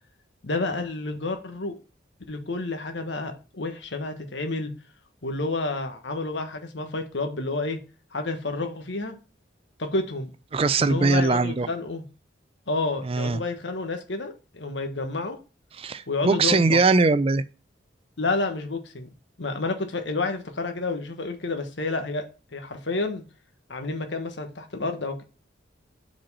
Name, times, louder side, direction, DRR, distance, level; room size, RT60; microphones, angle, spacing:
voice 1, 0.4-1.8 2.3-4.7 5.2-7.8 8.1-9.1 9.8-10.3 10.8-12.0 12.7-15.4 16.1-16.8 18.2-19.1 19.4-22.2 22.5-23.2 23.7-25.2, left 3 dB, 70° left, 1.3 m, -30 dB
voice 2, 10.5-11.7 13.0-13.4 15.8-17.4, right 3 dB, 30° right, 0.4 m, -21 dB
5.2 x 4.4 x 5.5 m
head